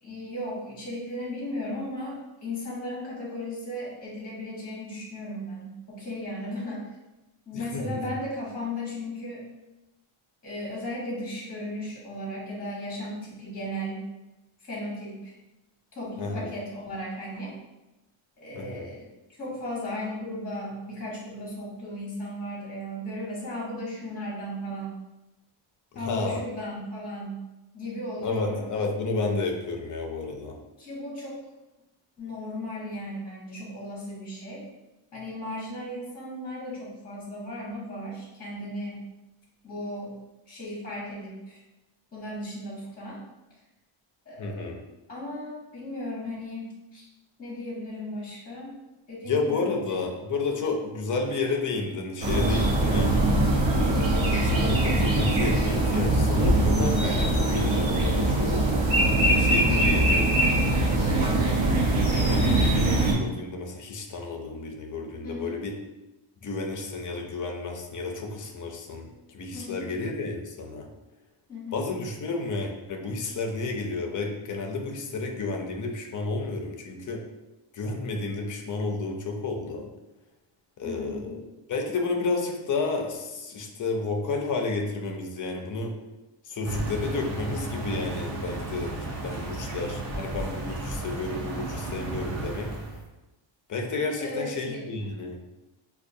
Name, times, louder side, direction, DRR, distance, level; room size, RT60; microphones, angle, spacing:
voice 1, 0.0-6.8 7.5-9.4 10.4-14.0 14.6-15.3 15.9-17.5 18.4-19.1 19.4-25.0 25.9-27.4 27.7-28.6 30.8-31.4 32.2-34.6 35.1-39.0 39.6-40.2 40.5-41.6 42.1-43.2 44.3-44.6 45.1-47.1 47.4-48.7 49.1-49.8 59.6-60.0 65.2-65.6 69.5-69.9 71.5-71.8 80.8-81.4 94.2-94.8, left 1 dB, 15° left, -5 dB, 0.9 m, -36 dB
voice 2, 7.5-8.0 16.2-16.5 18.5-18.9 25.9-26.4 28.2-30.6 44.4-44.8 49.3-53.2 53.8-58.7 59.3-60.3 61.0-65.8 66.4-70.9 71.7-77.3 77.7-79.9 80.8-81.4 81.7-86.0 86.4-89.0 89.2-92.8 93.7-95.4, left 3 dB, 40° left, 2 dB, 0.4 m, -31 dB
sound 1, 52.2-63.1, right 1 dB, 65° right, 0.9 m, -22 dB
sound 2, 86.6-93.0, right 2 dB, 35° right, 0.5 m, -34 dB
4.4 x 2.3 x 2.6 m, 1.0 s
wide cardioid pair, 170°, 49 cm